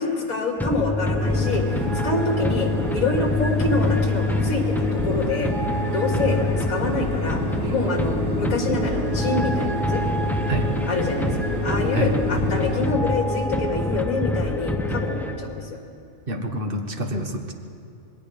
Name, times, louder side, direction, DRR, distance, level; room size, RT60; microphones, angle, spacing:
voice 1, 0.0-5.5 5.9-7.4 7.7-10.0 10.9-15.8, left 3 dB, 70° left, 1 dB, 3.0 m, -26 dB
sound 1, 0.6-15.7, left 1 dB, ahead, 0.7 m, -25 dB
sound 2, 1.2-12.9, left 1 dB, 90° right, 3.2 m, -30 dB
voice 2, 16.3-17.5, right 1 dB, 40° right, 4 dB, 1.7 m, -27 dB
26.5 x 20.0 x 5.2 m, 2.4 s
omnidirectional pair, 1.5 m